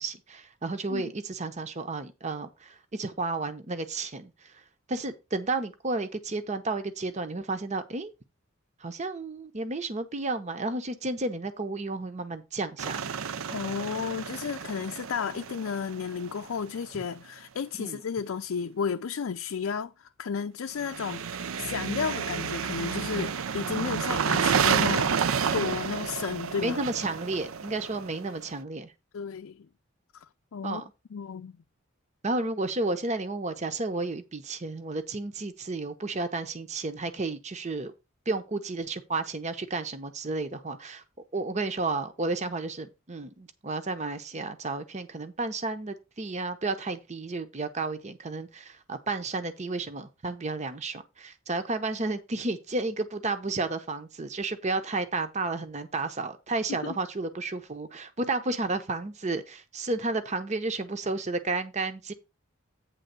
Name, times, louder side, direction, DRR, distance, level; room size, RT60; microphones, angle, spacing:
voice 1, 0.0-4.3 4.9-8.1 8.8-13.0 17.8-18.0 26.6-28.9 30.6-30.8 32.2-37.9 38.3-41.0 41.3-62.1, right 3 dB, 35° right, 0.8 m, -32 dB
sound 1, 12.8-16.6 20.8-28.5, right 7 dB, 80° right, 0.5 m, -30 dB
voice 2, 13.5-25.2 25.5-26.8 29.1-29.7 30.1-30.3 30.5-30.8 31.1-31.5 56.7-57.0, left 6 dB, 75° left, 0.4 m, -33 dB
9.1 x 3.5 x 6.6 m
head